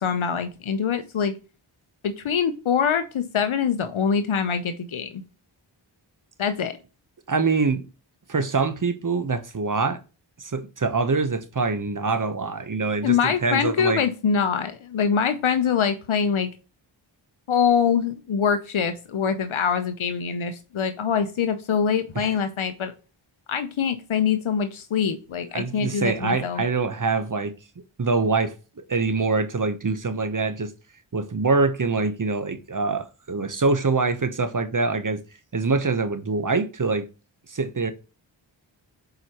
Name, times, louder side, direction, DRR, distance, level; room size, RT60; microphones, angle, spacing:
voice 1, 0.0-1.4 2.0-5.2 6.4-6.7 13.0-16.5 17.5-22.9 23.5-26.6, left 7 dB, 75° left, 0.8 m, -24 dB
voice 2, 7.3-7.8 8.3-10.0 10.4-14.0 22.1-22.4 25.5-27.5 28.0-30.7 31.1-35.2 35.5-37.1 37.5-37.9, right 4 dB, 40° right, 0.9 m, -24 dB
7.7 x 4.8 x 2.9 m
cardioid pair, 45°, 48 cm